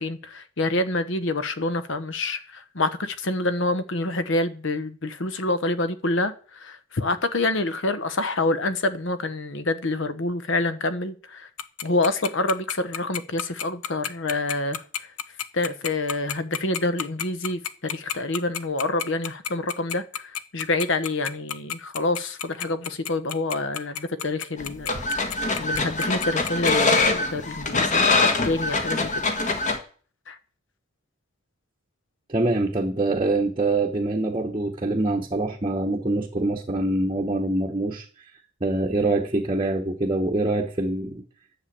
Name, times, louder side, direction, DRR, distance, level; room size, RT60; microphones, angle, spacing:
voice 1, 0.0-11.5 11.8-15.1 15.5-29.1 30.3-30.4, left 2 dB, 60° left, 1.0 m, -27 dB
Tick-tock, 11.6-26.7, left 9 dB, 90° left, 0.7 m, -30 dB
sound 1, 24.6-29.8, left 3 dB, 35° left, 1.5 m, -23 dB
voice 2, 32.3-38.1 38.6-41.2, right 2 dB, 25° right, 0.9 m, -24 dB
10.5 x 7.0 x 8.6 m
head